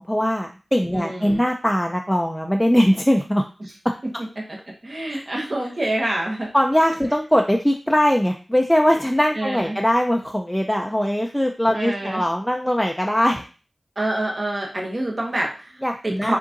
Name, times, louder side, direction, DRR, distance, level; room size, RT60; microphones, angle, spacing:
voice 1, 0.0-3.4 3.8-3.9 5.1-5.2 6.5-13.5 15.8-16.4, equal, 5° left, 3 dB, 0.4 m, -21 dB
voice 2, 0.9-1.4 4.4-4.6 4.8-6.5 9.4-9.8 11.7-12.2 14.0-16.4, right 1 dB, 50° right, -1 dB, 0.9 m, -27 dB
3.9 x 3.7 x 2.5 m, 0.35 s
wide cardioid pair, 65°, 0 cm